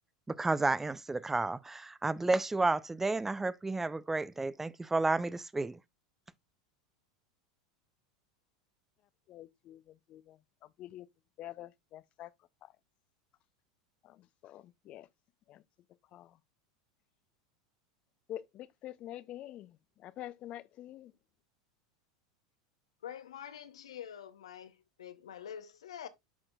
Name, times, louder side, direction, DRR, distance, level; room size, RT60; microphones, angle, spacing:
voice 1, 0.3-5.8, right 3 dB, 10° right, 0.4 m, -31 dB
voice 2, 9.3-10.4 10.8-11.1 11.4-12.3 12.6-12.7 14.0-15.1 15.5-15.6 16.1-16.4 18.3-21.1, left 13 dB, 40° left, 0.5 m, -47 dB
voice 3, 23.0-26.1, left 9 dB, 80° left, 0.8 m, -46 dB
11.5 x 4.3 x 2.3 m
hypercardioid pair, 90°, 3 cm